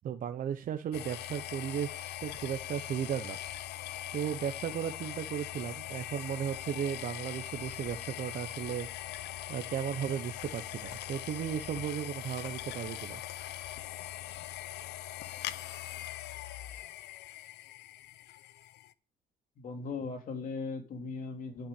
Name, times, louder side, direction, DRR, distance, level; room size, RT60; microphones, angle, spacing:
voice 1, 0.0-3.4 4.1-8.9 9.5-13.2, right 9 dB, 55° right, 7 dB, 0.9 m, -35 dB
sound 1, 0.9-18.9, left 13 dB, 75° left, 0.8 m, -41 dB
voice 2, 19.6-21.7, left 4 dB, 55° left, 5 dB, 3.0 m, -38 dB
11.5 x 5.9 x 8.3 m, 0.35 s
cardioid pair, 110°, 17 cm